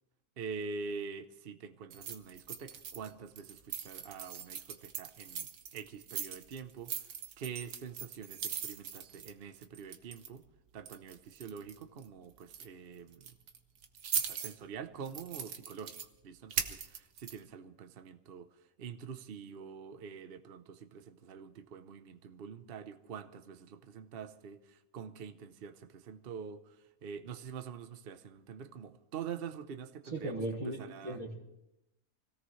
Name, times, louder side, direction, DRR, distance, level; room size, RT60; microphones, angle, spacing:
voice 1, 0.4-5.5 5.7-7.1 7.4-10.4 10.7-13.3 14.1-16.0 16.2-18.5 18.8-31.2, right 6 dB, 45° right, 9 dB, 0.9 m, -45 dB
sound 1, 1.9-3.1 3.4-10.5 10.9-12.1 12.4-12.7 13.1-14.6 15.0-16.1 16.5-17.4, right 7 dB, 85° right, 1.6 m, -40 dB
voice 2, 30.1-30.8 31.0-31.4, right 2 dB, 25° right, -3 dB, 1.8 m, -36 dB
25.5 x 17.0 x 3.2 m, 0.90 s
omnidirectional pair, 1.6 m